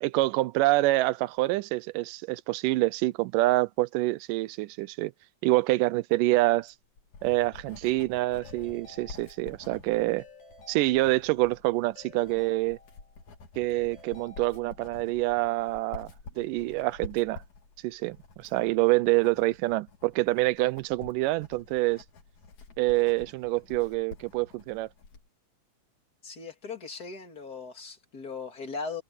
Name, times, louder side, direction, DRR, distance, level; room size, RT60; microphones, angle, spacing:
voice 1, 0.0-5.1 5.4-6.7 7.2-10.2 10.7-12.8 13.6-16.1 16.4-17.4 17.8-22.0 22.8-24.9, right 20 dB, 90° right, 2.2 m, -26 dB
Writing, 6.5-25.3, left 4 dB, 60° left, 4.6 m, -49 dB
Keyboard (musical) / Ringtone, 8.4-9.8 10.2-11.5 12.0-13.3 13.7-15.1, left 3 dB, 85° left, 5.5 m, -54 dB
voice 2, 26.2-29.0, left 4 dB, 30° left, 2.6 m, -38 dB
omnidirectional pair, 3.7 m